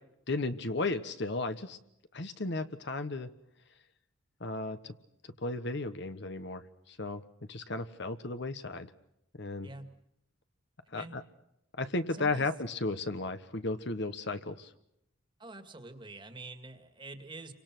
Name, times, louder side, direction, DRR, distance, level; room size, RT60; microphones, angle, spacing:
voice 1, 0.3-1.8 2.1-3.3 4.4-4.9 5.4-7.2 7.5-8.9 9.4-9.7 10.9-11.2 11.8-14.7, left 2 dB, 55° left, 10 dB, 1.2 m, -34 dB
voice 2, 9.6-10.0 10.9-11.2 12.1-12.5 15.4-17.5, right 2 dB, 25° right, 7 dB, 2.0 m, -46 dB
29.0 x 25.0 x 6.1 m, 0.79 s
head